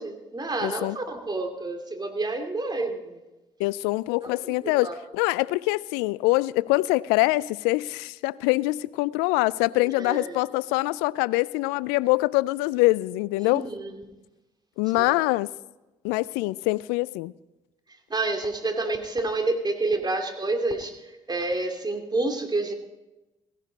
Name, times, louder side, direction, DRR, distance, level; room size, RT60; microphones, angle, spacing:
voice 1, 0.0-3.2 4.2-5.0 10.0-10.4 13.4-14.1 14.9-15.1 18.1-22.7, right 2 dB, 25° right, 2.8 m, -29 dB
voice 2, 0.6-1.0 3.6-13.7 14.8-15.5 16.0-17.3, left 20 dB, 75° left, 0.4 m, -24 dB
17.0 x 17.0 x 4.1 m
hypercardioid pair, 50°, 16 cm